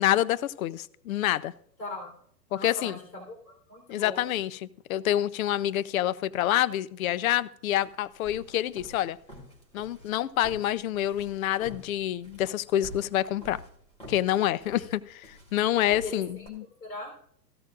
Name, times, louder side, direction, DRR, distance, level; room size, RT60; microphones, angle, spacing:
voice 1, 0.0-1.5 2.5-3.0 3.9-4.6 4.9-9.2 9.7-13.6 14.1-16.6, left 13 dB, 55° left, 0.6 m, -27 dB
voice 2, 1.8-2.2 2.5-4.3 14.7-14.9 16.0-17.1, left 2 dB, 90° left, 3.7 m, -40 dB
sound 1, 7.8-16.5, equal, 10° left, 3.6 m, -48 dB
15.5 x 13.5 x 2.4 m
hypercardioid pair, 125°, 50 cm